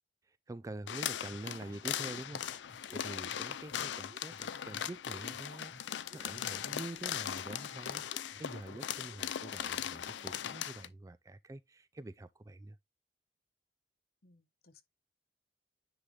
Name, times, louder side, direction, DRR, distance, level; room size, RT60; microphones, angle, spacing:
voice 1, 0.3-12.8, right 2 dB, 20° right, 0.3 m, -46 dB
sound 1, 0.9-10.9, left 10 dB, 85° left, 0.5 m, -39 dB
sound 2, 0.9-9.2, right 1 dB, 35° right, 1.6 m, -58 dB
voice 2, 14.2-14.8, left 3 dB, 55° left, 1.0 m, -64 dB
9.9 x 3.8 x 3.2 m
head